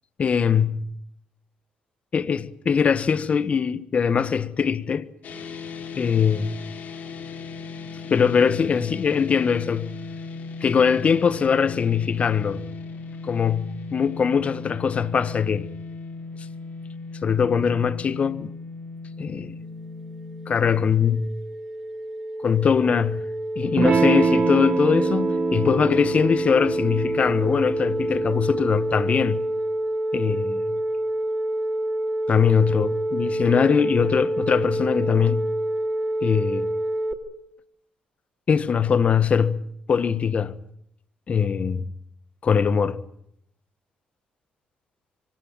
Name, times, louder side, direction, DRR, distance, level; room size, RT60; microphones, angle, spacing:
voice 1, 0.2-0.9 2.1-5.1 5.9-6.6 8.1-9.9 10.6-12.6 13.2-15.7 17.2-18.5 19.2-19.5 20.5-21.4 22.4-23.2 23.6-29.4 30.1-30.8 32.3-35.5 36.2-36.7 38.5-40.6 41.3-41.8 42.4-43.0, left 6 dB, 45° left, 1.4 m, -22 dB
sound 1, 5.2-20.9, left 4 dB, 65° left, 3.8 m, -37 dB
sound 2, 20.1-37.1, right 1 dB, 15° right, 2.5 m, -27 dB
Electric guitar / Strum, 23.8-28.9, right 4 dB, 45° right, 1.9 m, -26 dB
24.5 x 18.0 x 9.1 m
supercardioid pair, 65°, 3 cm